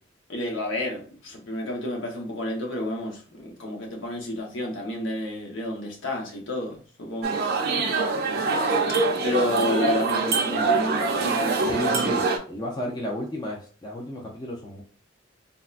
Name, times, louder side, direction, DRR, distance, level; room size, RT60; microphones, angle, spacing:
voice 1, 0.3-7.3 9.2-11.7, left 1 dB, 75° left, 0 dB, 0.9 m, -30 dB
sound 1, 7.2-12.4, right 4 dB, 50° right, 0.5 m, -24 dB
voice 2, 11.6-14.8, left 1 dB, 20° left, -2 dB, 0.5 m, -32 dB
3.6 x 2.1 x 2.4 m, 0.40 s
head